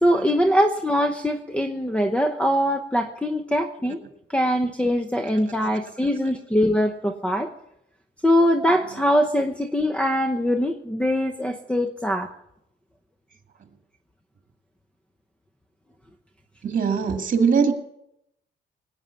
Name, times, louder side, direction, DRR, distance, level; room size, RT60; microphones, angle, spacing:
voice 1, 0.0-4.0 4.3-7.5 8.2-12.3, equal, 5° left, 6 dB, 1.0 m, -22 dB
voice 2, 16.6-17.7, right 6 dB, 45° right, 5 dB, 2.3 m, -21 dB
19.0 x 9.1 x 7.1 m, 0.80 s
cardioid pair, 90°, 20 cm